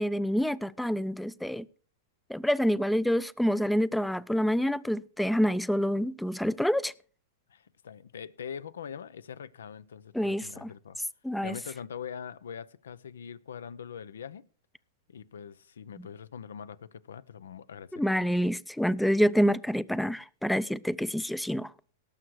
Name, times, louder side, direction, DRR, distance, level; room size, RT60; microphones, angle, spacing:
voice 1, 0.0-1.6 2.3-6.9 10.1-10.7 11.2-11.5 17.9-21.7, equal, 5° left, 0.4 m, -27 dB
voice 2, 7.5-11.0 11.4-14.4 15.1-18.3, left 7 dB, 80° left, 0.7 m, -43 dB
18.0 x 6.6 x 4.7 m
hypercardioid pair, 120°, 0 cm